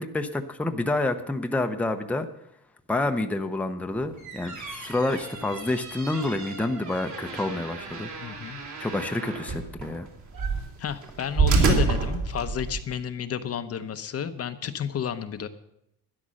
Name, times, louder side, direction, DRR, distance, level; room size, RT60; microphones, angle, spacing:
voice 1, 0.0-2.3 2.9-8.1 8.8-10.1, left 2 dB, 5° left, 6 dB, 0.7 m, -28 dB
sound 1, 4.0-12.9, right 4 dB, 55° right, 3.1 m, -29 dB
voice 2, 8.2-8.6 10.8-15.5, left 8 dB, 45° left, 10 dB, 0.8 m, -31 dB
12.5 x 10.0 x 6.4 m, 0.80 s
cardioid pair, 125°, 35 cm